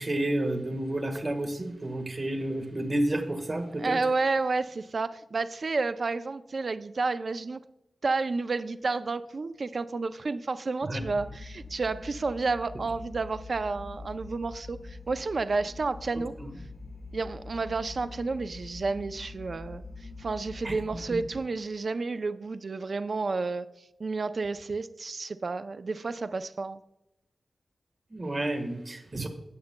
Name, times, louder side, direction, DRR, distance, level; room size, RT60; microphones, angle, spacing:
voice 1, 0.0-4.0 10.8-11.0 16.4-16.5 20.6-20.7 28.1-29.3, right 1 dB, 35° right, 6 dB, 1.4 m, -30 dB
voice 2, 3.8-7.6 8.0-16.3 17.1-23.7 24.0-26.8 29.1-29.3, right 3 dB, 55° right, 11 dB, 0.4 m, -31 dB
sound 1, 11.0-21.4, left 3 dB, 50° left, 1.5 m, -44 dB
17.0 x 7.0 x 2.2 m, 0.90 s
wide cardioid pair, 105°, 0 cm